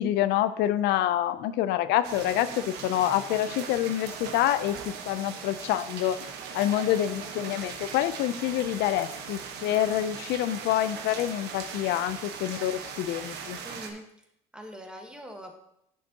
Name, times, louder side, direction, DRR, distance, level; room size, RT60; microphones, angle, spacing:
voice 1, 0.0-6.2 6.5-13.6, left 12 dB, 85° left, 13 dB, 0.4 m, -27 dB
sound 1, 2.0-13.9, right 6 dB, 85° right, 1.0 m, -39 dB
sound 2, 4.1-9.6, right 1 dB, 45° left, 2.1 m, -51 dB
voice 2, 13.6-14.0 14.5-15.5, equal, 5° right, 3 dB, 1.3 m, -42 dB
10.5 x 6.9 x 2.8 m, 0.76 s
cardioid pair, 110°, 17 cm